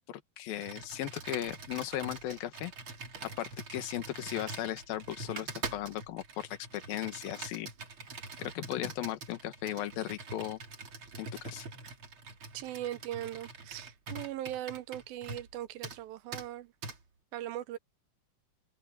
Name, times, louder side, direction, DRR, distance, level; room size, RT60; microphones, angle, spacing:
voice 1, 0.1-2.7 3.2-7.7 8.4-10.6 11.2-11.7, left 13 dB, 70° left, 3.1 m, -37 dB
Computer keyboard, 0.5-15.5 15.8-16.0 16.3-16.5 16.8-17.0, right 4 dB, 40° right, 2.8 m, -44 dB
voice 2, 12.5-16.7 17.3-17.8, right 13 dB, 75° right, 2.6 m, -39 dB
omnidirectional pair, 4.4 m